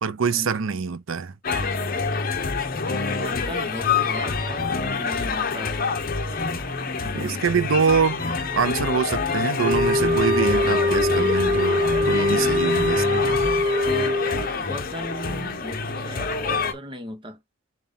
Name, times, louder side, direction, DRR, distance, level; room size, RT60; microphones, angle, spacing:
voice 1, 0.0-1.3 7.0-8.2 8.5-13.3, right 6 dB, 90° right, 0.6 m, -24 dB
sound 1, 1.4-16.7, left 4 dB, 45° left, 0.9 m, -26 dB
voice 2, 3.0-5.8 14.5-17.4, equal, 25° right, 1.1 m, -37 dB
sound 2, 9.6-14.5, left 2 dB, 50° right, 0.8 m, -22 dB
7.2 x 2.5 x 5.6 m
head